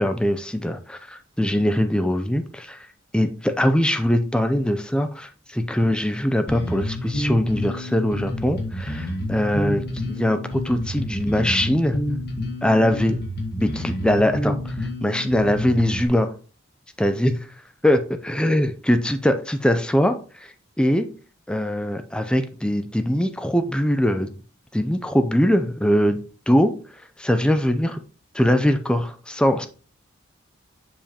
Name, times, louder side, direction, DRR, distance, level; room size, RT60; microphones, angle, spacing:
voice 1, 0.0-2.9 3.1-12.0 12.6-13.2 13.6-16.3 17.0-17.5 17.8-20.5 20.8-21.1 21.5-24.4 24.7-26.7 27.2-28.0 28.3-29.7, equal, 5° left, 0.4 m, -22 dB
Bass guitar, 6.5-16.1, left 1 dB, 50° left, 1.5 m, -29 dB
7.2 x 5.2 x 2.9 m
head